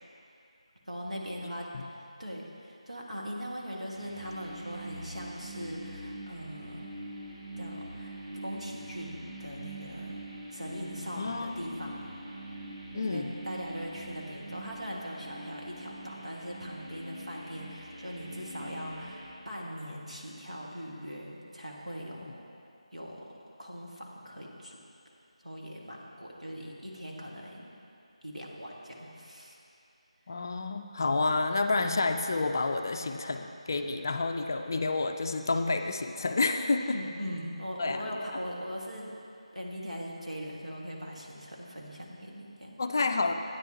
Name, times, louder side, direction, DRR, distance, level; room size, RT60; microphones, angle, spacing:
voice 1, 0.9-1.7 2.2-6.8 7.6-10.2 10.5-12.2 13.1-22.4 22.9-23.3 23.6-24.8 25.4-27.8 28.2-29.6 36.8-39.2 39.5-42.8, equal, 85° right, -3 dB, 1.6 m, -40 dB
sound 1, 3.9-19.3, right 1 dB, 30° right, 1.7 m, -44 dB
voice 2, 11.2-11.9 12.9-13.3 30.3-37.0 37.8-38.1 42.8-43.3, left 3 dB, 35° left, 6 dB, 0.3 m, -29 dB
11.5 x 9.2 x 2.8 m, 2.7 s
figure-of-eight pair, 160°, 4 cm